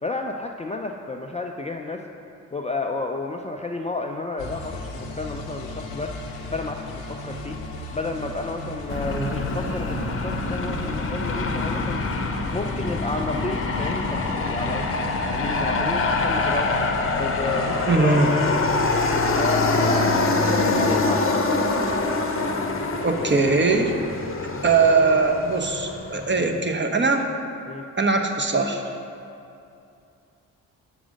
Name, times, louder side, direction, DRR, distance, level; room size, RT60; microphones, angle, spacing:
voice 1, 0.0-2.0 2.5-6.1 6.5-7.6 7.9-12.0 12.5-14.9 15.3-16.7 17.1-18.6 19.4-21.5 26.4-26.6 27.7-27.8, left 3 dB, 15° left, 2 dB, 0.4 m, -31 dB
sound 1, 4.4-18.0, left 2 dB, 85° left, 0.8 m, -36 dB
Aircraft, 8.9-26.3, left 3 dB, 35° left, 0.8 m, -25 dB
voice 2, 17.9-18.3 23.0-23.9 24.6-27.3 28.0-28.8, right 4 dB, 30° right, 4 dB, 0.9 m, -21 dB
6.1 x 4.9 x 6.4 m, 2.6 s
hypercardioid pair, 40°, 40 cm